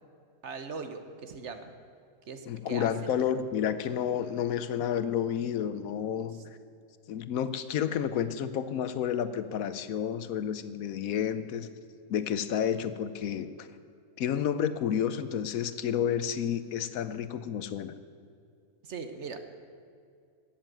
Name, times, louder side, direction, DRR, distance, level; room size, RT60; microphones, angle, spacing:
voice 1, 0.4-1.7 2.3-3.1 6.3-6.4 18.8-19.4, right 5 dB, 55° right, 7 dB, 1.1 m, -40 dB
voice 2, 2.5-6.4 7.1-11.7 12.1-13.7 14.2-17.9, left 9 dB, 75° left, 12 dB, 1.1 m, -30 dB
14.5 x 7.3 x 9.0 m, 2.3 s
omnidirectional pair, 1.5 m